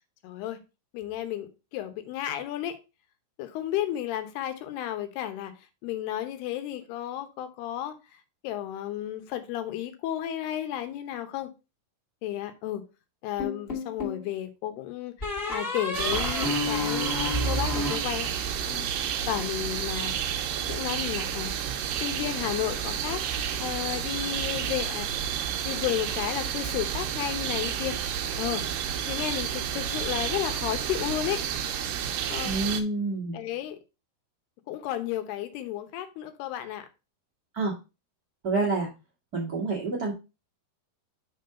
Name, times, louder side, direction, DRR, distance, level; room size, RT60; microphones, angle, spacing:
voice 1, 0.2-0.6 0.9-2.8 3.4-5.5 5.8-8.0 8.4-11.5 12.2-12.8 13.2-18.3 18.6-20.1 20.7-21.5 22.0-25.1 25.6-28.0 28.4-28.7 29.1-31.4 32.3-32.6 33.3-33.8 34.7-36.9, left 12 dB, 80° left, 8 dB, 2.9 m, -33 dB
sound 1, 13.4-14.3 15.2-18.7, left 1 dB, 20° left, 1.6 m, -30 dB
sound 2, 15.9-32.8, right 8 dB, 75° right, 2.1 m, -31 dB
voice 2, 32.4-33.4 37.5-37.7 38.4-38.9 39.3-40.1, right 3 dB, 50° right, -3 dB, 1.1 m, -28 dB
6.1 x 3.9 x 5.6 m, 0.28 s
omnidirectional pair, 4.7 m